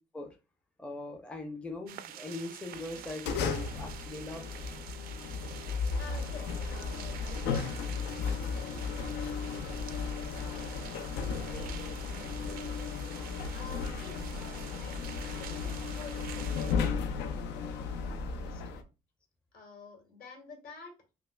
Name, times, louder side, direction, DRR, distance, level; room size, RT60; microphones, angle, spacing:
voice 1, 0.8-4.5, left 2 dB, 5° left, 3 dB, 0.5 m, -41 dB
sound 1, 1.9-16.8, right 11 dB, 60° right, 0.4 m, -48 dB
sound 2, 2.7-18.8, left 5 dB, 85° left, 0.5 m, -35 dB
voice 2, 5.9-11.1 11.4-12.8 13.5-18.6 19.5-21.0, left 4 dB, 60° left, 2 dB, 1.5 m, -51 dB
5.5 x 2.0 x 2.2 m, 0.29 s
cardioid pair, 110°, 17 cm